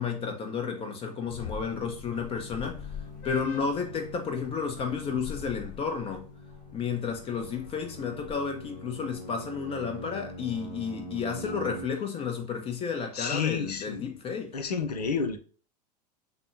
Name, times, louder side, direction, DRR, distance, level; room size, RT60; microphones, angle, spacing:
voice 1, 0.0-2.8 3.2-6.3 6.7-14.5, left 6 dB, 25° left, 1.1 m, -32 dB
sound 1, 1.2-11.8, left 3 dB, 40° left, 1.7 m, -42 dB
voice 2, 13.1-14.1 14.5-15.4, left 6 dB, 70° left, 0.8 m, -30 dB
6.7 x 2.4 x 2.7 m
figure-of-eight pair, 80°, 21 cm